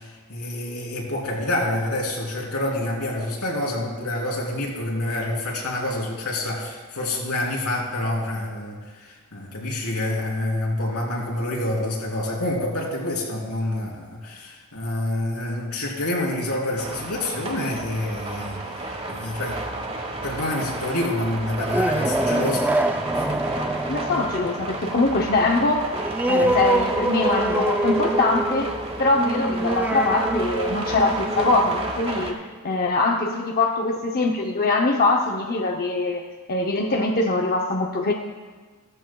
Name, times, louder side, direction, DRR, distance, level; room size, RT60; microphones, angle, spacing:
voice 1, 0.0-22.9 23.1-23.3 26.4-26.5, left 1 dB, 85° left, -3 dB, 3.5 m, -27 dB
sound 1, 16.8-32.3, right 2 dB, 30° right, 1.3 m, -32 dB
sound 2, 21.4-32.7, right 1 dB, 10° right, 0.4 m, -26 dB
voice 2, 23.9-25.9 26.3-36.2 36.5-38.1, left 2 dB, 45° left, 2 dB, 0.7 m, -23 dB
16.5 x 13.5 x 2.3 m, 1.4 s
head